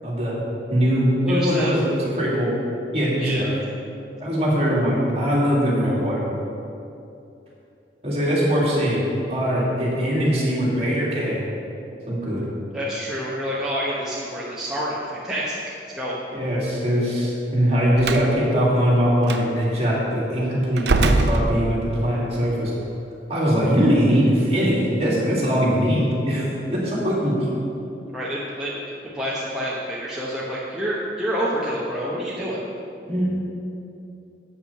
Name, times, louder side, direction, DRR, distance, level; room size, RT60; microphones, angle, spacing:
voice 1, 0.0-0.4 0.7-2.5 2.9-3.5 4.2-6.2 8.0-11.5 12.1-12.4 16.3-22.7 23.3-27.5 33.1-33.2, equal, 35° right, -6 dB, 2.3 m, -21 dB
voice 2, 1.3-1.7 3.2-3.5 12.7-15.6 15.9-16.2 28.1-28.7 29.0-32.6, equal, 5° right, -7 dB, 0.9 m, -28 dB
Slam, 18.0-18.3 19.2-19.4 20.8-22.1, right 2 dB, 65° right, 0.5 m, -21 dB
8.1 x 5.8 x 6.6 m, 2.7 s
head